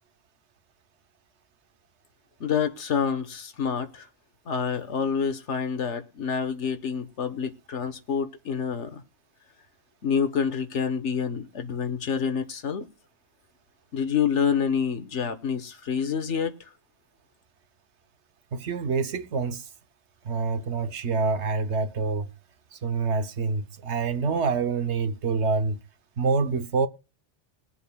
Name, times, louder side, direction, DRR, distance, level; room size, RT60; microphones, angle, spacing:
voice 1, 2.4-4.1 4.5-9.0 10.0-12.9 13.9-16.6, left 6 dB, 90° left, 1.5 m, -27 dB
voice 2, 18.5-19.7 20.2-22.3 22.7-25.8 26.2-26.9, right 4 dB, 75° right, 1.1 m, -26 dB
21.5 x 7.7 x 2.3 m
omnidirectional pair, 1.2 m